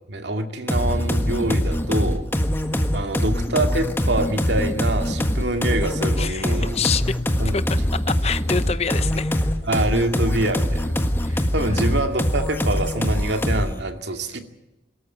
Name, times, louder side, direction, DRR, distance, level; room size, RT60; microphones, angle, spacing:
voice 1, 0.1-2.2 2.9-6.8 7.4-7.6 9.6-11.0 11.3-14.4, right 1 dB, 75° right, 6 dB, 2.2 m, -25 dB
sound 1, 0.7-13.8, equal, 15° left, 1.5 m, -23 dB
voice 2, 6.2-7.2 7.5-7.6 7.9-9.4 11.2-11.9, left 5 dB, 35° left, 14 dB, 0.7 m, -27 dB
23.5 x 13.5 x 9.1 m, 1.1 s
head